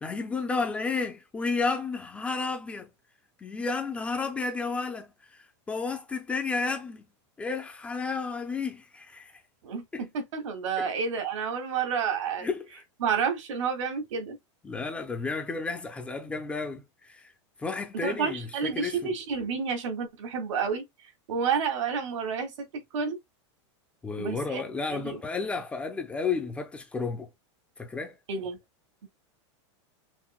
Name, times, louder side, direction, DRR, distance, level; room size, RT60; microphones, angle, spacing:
voice 1, 0.0-2.9 3.4-7.1 7.4-9.4 9.9-10.0 10.8-10.9 12.4-12.6 14.6-17.3 17.6-19.1 24.0-27.3 27.8-28.2, left 4 dB, 10° left, 0.4 m, -32 dB
voice 2, 9.6-12.5 13.0-14.4 18.0-23.2 24.2-24.6 24.9-25.2 28.3-28.6, right 6 dB, 85° right, 1.5 m, -30 dB
5.8 x 2.1 x 2.3 m
supercardioid pair, 170°, 15 cm